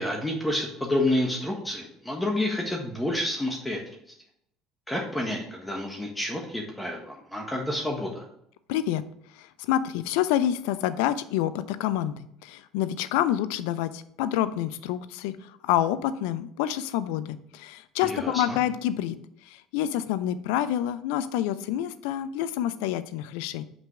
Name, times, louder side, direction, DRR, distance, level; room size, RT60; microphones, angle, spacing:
voice 1, 0.0-3.8 4.9-8.2 18.0-18.6, left 1 dB, 10° left, 0 dB, 1.4 m, -29 dB
voice 2, 8.7-9.0 9.4-19.2 19.5-23.6, left 11 dB, 70° left, 14 dB, 0.5 m, -28 dB
6.0 x 5.3 x 4.8 m, 0.72 s
hypercardioid pair, 60°, 0 cm